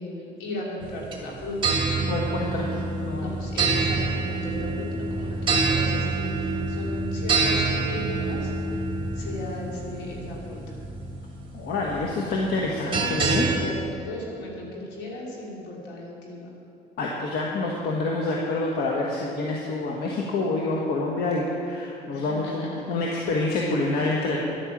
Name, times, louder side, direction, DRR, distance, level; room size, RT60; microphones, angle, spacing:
voice 1, 0.0-2.7 3.1-7.6 7.9-8.8 9.1-10.8 13.5-16.5 22.1-22.8, left 2 dB, 85° left, -3 dB, 3.2 m, -37 dB
sound 1, 0.8-13.6, right 3 dB, 30° right, 2.3 m, -27 dB
voice 2, 2.1-3.3 11.5-13.5 17.0-24.4, left 2 dB, 70° left, -2 dB, 1.5 m, -27 dB
11.0 x 8.9 x 7.4 m, 2.8 s
cardioid pair, 110°, 17 cm